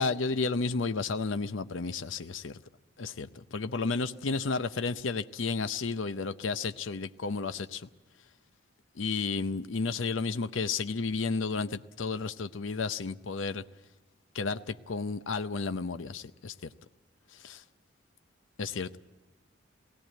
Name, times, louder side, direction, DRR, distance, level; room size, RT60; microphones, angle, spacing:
voice 1, 0.0-2.6 3.0-7.9 9.0-13.6 14.3-16.7 17.3-17.6 18.6-19.0, left 4 dB, 70° left, 0.6 m, -32 dB
18.0 x 17.5 x 9.1 m
head